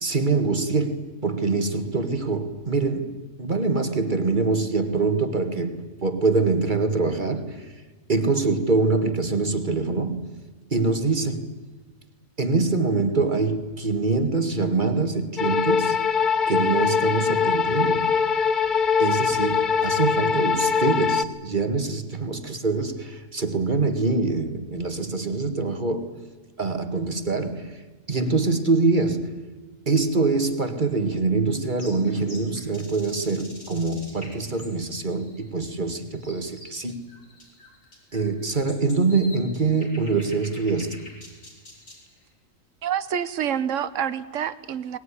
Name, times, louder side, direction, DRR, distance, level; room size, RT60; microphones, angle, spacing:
voice 1, 0.0-7.5 8.1-10.3 10.7-11.5 12.4-16.0 16.5-18.1 19.0-26.2 26.6-27.7 28.1-29.4 29.9-37.0 38.1-41.0, right 3 dB, 35° right, 2.1 m, -24 dB
sound 1, 15.4-21.2, left 6 dB, 40° left, 1.0 m, -22 dB
sound 2, 31.8-42.2, left 1 dB, 75° left, 6.1 m, -47 dB
voice 2, 42.8-45.0, right 8 dB, 70° right, 1.4 m, -27 dB
23.0 x 21.0 x 10.0 m
omnidirectional pair, 1.4 m